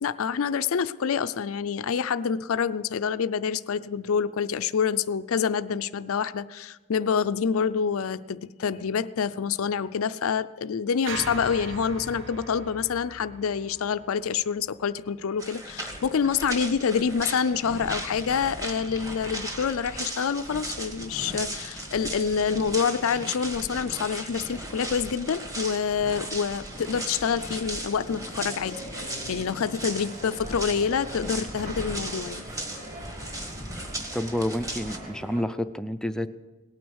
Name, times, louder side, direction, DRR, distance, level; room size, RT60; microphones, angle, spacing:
voice 1, 0.0-32.5 32.9-33.0, left 6 dB, 65° left, 13 dB, 0.4 m, -27 dB
sound 1, 11.1-15.4, right 3 dB, 55° right, 1.2 m, -40 dB
sound 2, 15.4-35.0, right 1 dB, 15° right, 1.4 m, -37 dB
sound 3, 27.4-35.4, right 1 dB, 40° right, 4.4 m, -43 dB
voice 2, 34.1-36.3, left 1 dB, 5° left, 10 dB, 0.4 m, -29 dB
18.5 x 9.2 x 6.4 m, 1.2 s
head